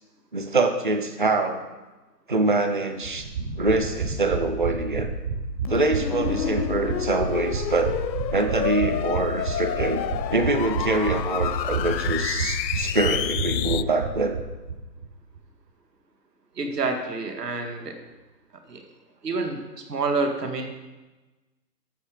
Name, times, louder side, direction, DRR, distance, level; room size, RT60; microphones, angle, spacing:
voice 1, 0.3-1.6 2.3-3.3 3.6-5.1 5.7-7.9 8.3-10.0 10.3-14.4, right 3 dB, 30° right, 7 dB, 0.6 m, -24 dB
sound 1, 3.0-14.8 15.0-15.1 15.3-15.4, right 4 dB, 50° right, 4.2 m, -30 dB
sound 2, 5.6-13.8, left 11 dB, 90° left, 0.6 m, -29 dB
voice 2, 16.6-17.9 18.7-18.8 19.2-19.6 19.9-20.7, right 3 dB, 70° right, 4 dB, 2.1 m, -27 dB
11.5 x 7.4 x 5.0 m, 1.2 s
hypercardioid pair, 170°, 50 cm